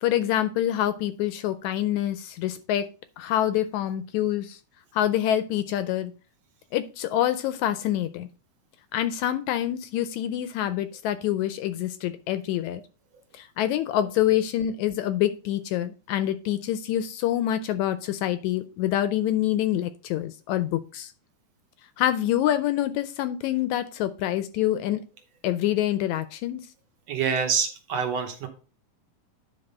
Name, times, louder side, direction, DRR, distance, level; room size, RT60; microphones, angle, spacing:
voice 1, 0.0-2.9 3.2-4.6 4.9-6.1 6.7-8.3 8.9-12.8 13.3-21.1 22.0-25.0 25.4-26.6, left 12 dB, 80° left, 12 dB, 1.7 m, -26 dB
voice 2, 27.1-28.5, right 6 dB, 65° right, 4 dB, 1.9 m, -26 dB
10.0 x 3.6 x 5.4 m, 0.35 s
omnidirectional pair, 3.7 m